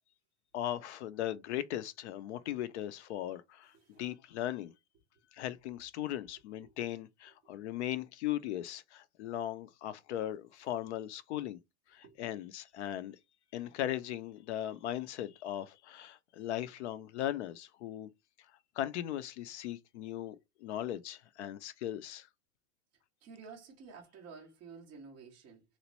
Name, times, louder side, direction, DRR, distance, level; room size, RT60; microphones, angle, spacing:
voice 1, 0.5-4.7 5.3-11.6 11.9-13.2 13.5-18.1 18.8-22.3, left 12 dB, 55° left, 0.4 m, -38 dB
voice 2, 23.2-25.6, right 5 dB, 15° right, 0.4 m, -52 dB
3.0 x 2.5 x 2.9 m
supercardioid pair, 150°, 42 cm